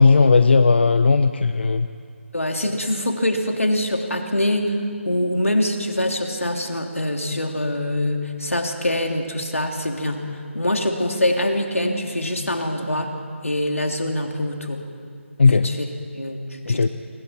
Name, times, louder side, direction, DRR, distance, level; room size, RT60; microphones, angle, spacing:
voice 1, 0.0-1.9 15.4-15.7 16.7-16.9, left 4 dB, 55° left, 10 dB, 0.7 m, -16 dB
voice 2, 2.3-10.3 10.5-13.1 13.4-14.8 15.5-15.9 16.1-16.4 16.7-16.9, left 1 dB, 85° left, 3 dB, 3.0 m, -24 dB
30.0 x 24.0 x 4.5 m, 2.2 s
figure-of-eight pair, 155°, 7 cm